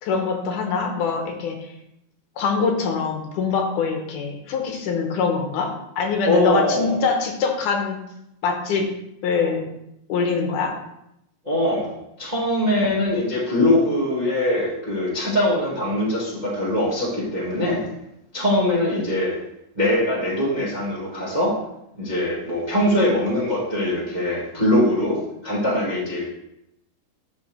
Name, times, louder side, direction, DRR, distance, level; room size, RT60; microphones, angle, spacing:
voice 1, 0.0-1.6 2.4-8.0 8.4-8.9 9.2-9.7 10.1-10.7, left 5 dB, 75° left, 3 dB, 2.4 m, -24 dB
voice 2, 6.2-7.0 11.4-11.9 12.2-17.8 18.3-19.3 19.7-21.5 21.9-25.2 25.4-26.3, left 1 dB, 25° right, -6 dB, 1.0 m, -22 dB
11.5 x 4.5 x 3.3 m, 0.82 s
omnidirectional pair, 3.9 m